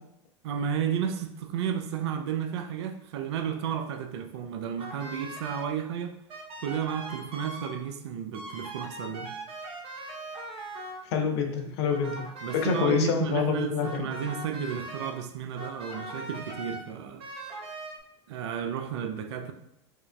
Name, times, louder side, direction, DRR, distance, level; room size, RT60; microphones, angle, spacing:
voice 1, 0.4-6.2 6.6-9.3 12.4-17.3 18.3-19.5, right 8 dB, 70° right, 7 dB, 0.5 m, -32 dB
sound 1, 4.8-5.7 6.3-7.8 8.3-11.0 11.9-12.9 13.8-15.1 15.6-16.8 17.2-18.0, right 1 dB, 40° right, 0.8 m, -40 dB
voice 2, 11.1-12.3 12.5-14.1, left 6 dB, 65° left, 4 dB, 0.6 m, -27 dB
4.5 x 2.4 x 2.2 m, 0.78 s
hypercardioid pair, 90°, 15 cm